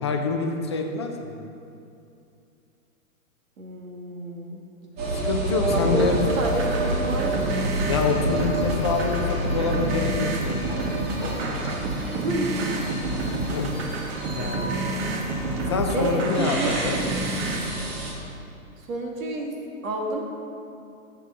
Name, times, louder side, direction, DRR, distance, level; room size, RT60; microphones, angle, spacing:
voice 1, 0.0-1.4 5.1-6.2 7.9-10.6 13.5-13.9 14.3-14.7 15.7-17.0, left 4 dB, 20° left, 3 dB, 0.3 m, -26 dB
voice 2, 3.6-4.6 5.6-6.1 6.4-7.7 12.2-12.5 15.9-16.8 18.8-19.5 19.8-20.2, right 2 dB, 65° right, 0 dB, 1.9 m, -29 dB
sound 1, 5.0-18.1, right 1 dB, 45° right, 2.5 m, -29 dB
sound 2, 5.7-17.7, right 2 dB, 20° right, 0.6 m, -30 dB
14.0 x 6.8 x 3.7 m, 2.6 s
hypercardioid pair, 140°, 42 cm